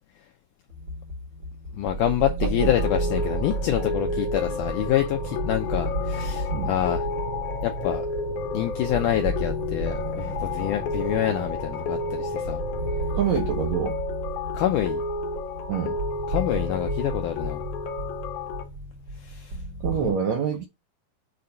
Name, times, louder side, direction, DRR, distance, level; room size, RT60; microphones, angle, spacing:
sound 1, 0.7-20.1, right 1 dB, 50° right, 2.1 m, -33 dB
voice 1, 1.7-7.1 7.6-8.1 8.5-12.6 14.5-15.0 16.3-17.6 19.2-19.6 20.0-20.1, left 12 dB, 80° left, 1.8 m, -27 dB
sound 2, 2.4-13.2, right 3 dB, 35° right, 1.0 m, -38 dB
sound 3, 2.6-18.6, left 4 dB, 65° left, 2.2 m, -32 dB
voice 2, 13.1-13.9 15.7-16.0 19.8-20.7, right 8 dB, 75° right, 1.7 m, -26 dB
6.8 x 2.5 x 5.4 m
omnidirectional pair, 4.3 m